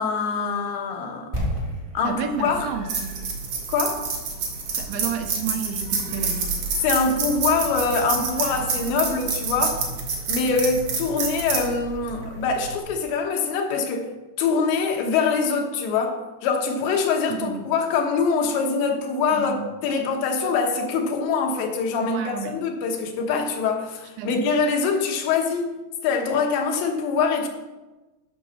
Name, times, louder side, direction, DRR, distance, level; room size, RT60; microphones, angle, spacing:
voice 1, 0.0-1.3 2.0-2.7 3.7-4.0 6.8-9.8 10.3-14.1 14.4-25.7 26.0-27.5, left 5 dB, 90° left, 2 dB, 3.5 m, -24 dB
sound 1, 1.3-5.3 5.5-5.6, equal, 15° right, 2.6 m, -33 dB
voice 2, 2.0-3.1 4.8-6.5 17.3-17.6 19.3-19.7 22.0-22.6 24.2-24.5, right 7 dB, 80° right, 6 dB, 2.9 m, -31 dB
sound 2, 2.3-12.8, right 4 dB, 55° right, 2.8 m, -28 dB
12.0 x 5.2 x 6.4 m, 1.1 s
omnidirectional pair, 4.9 m